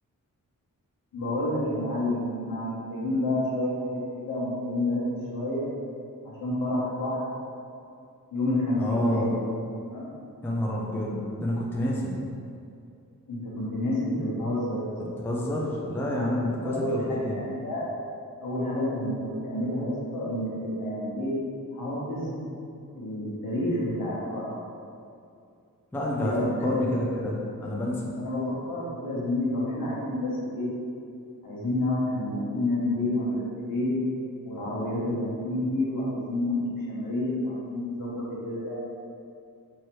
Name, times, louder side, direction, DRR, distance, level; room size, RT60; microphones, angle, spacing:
voice 1, 1.1-5.0 5.3-5.7 6.2-7.3 8.3-9.3 9.9-10.1 13.3-14.9 15.5-15.9 16.6-17.8 18.4-21.3 21.7-22.3 22.9-24.6 26.2-26.7 28.1-30.7 31.4-33.4 33.7-34.0 34.4-38.8, left 1 dB, 80° left, -7 dB, 1.1 m, -29 dB
voice 2, 8.8-9.3 10.4-12.1 15.2-17.4 25.9-26.3 26.6-28.1, left 1 dB, 5° left, -4 dB, 0.4 m, -28 dB
4.6 x 2.8 x 3.0 m, 2.5 s
wide cardioid pair, 170°, 33 cm